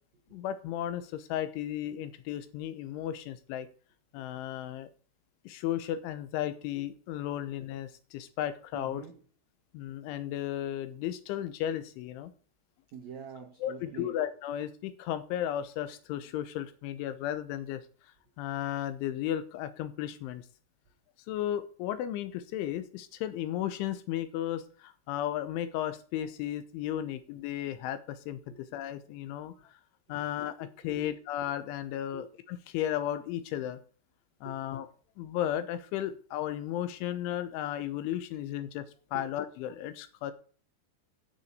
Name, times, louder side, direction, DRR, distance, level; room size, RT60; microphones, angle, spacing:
voice 1, 0.3-3.7 4.1-4.9 5.4-9.1 9.7-12.3 13.6-17.8 18.4-20.4 21.3-29.5 30.1-33.8 34.4-34.9 35.2-38.9 39.1-40.3, left 11 dB, 90° left, 13 dB, 3.4 m, -34 dB
voice 2, 8.7-9.2 12.9-14.2 28.5-28.6 30.1-30.2 30.9-31.0 32.1-32.3 34.4-34.6 39.1-39.2, right 7 dB, 80° right, 4 dB, 1.6 m, -45 dB
9.7 x 7.1 x 8.0 m, 0.42 s
omnidirectional pair, 5.3 m